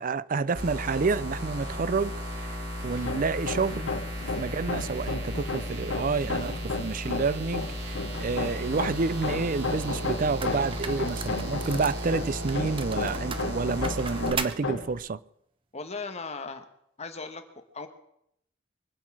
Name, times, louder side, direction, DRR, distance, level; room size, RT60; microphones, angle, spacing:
voice 1, 0.0-3.9 4.4-15.2, right 4 dB, 45° right, 0.5 m, -29 dB
sound 1, 0.5-14.3, equal, 60° right, 3.7 m, -35 dB
Hammer, 2.9-15.0, left 3 dB, 80° left, 1.2 m, -34 dB
sound 2, 9.8-9.9 10.4-12.1 12.5-14.6, right 5 dB, 25° right, 1.0 m, -37 dB
voice 2, 15.7-16.6 17.0-17.4 17.7-17.9, left 4 dB, 35° left, 1.3 m, -37 dB
24.0 x 8.3 x 6.2 m
head